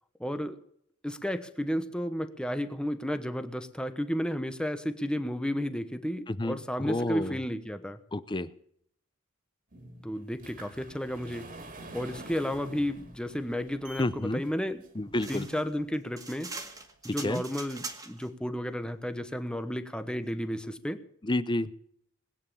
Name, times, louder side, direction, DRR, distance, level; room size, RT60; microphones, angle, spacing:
voice 1, 0.2-0.6 1.0-8.0 10.0-11.5 11.9-14.8 15.3-16.5 17.0-21.0, equal, 5° left, 10 dB, 1.1 m, -32 dB
voice 2, 6.3-7.4 8.1-8.5 14.0-14.4 15.0-15.5 17.2-17.4 21.2-21.7, left 1 dB, 20° left, 15 dB, 0.7 m, -30 dB
sound 1, 9.7-15.8 16.4-16.5 17.1-17.2 17.5-17.6, right 2 dB, 40° right, 2.5 m, -48 dB
sound 2, 15.2-18.3, right 3 dB, 15° right, 1.9 m, -42 dB
20.0 x 9.5 x 7.1 m, 0.69 s
head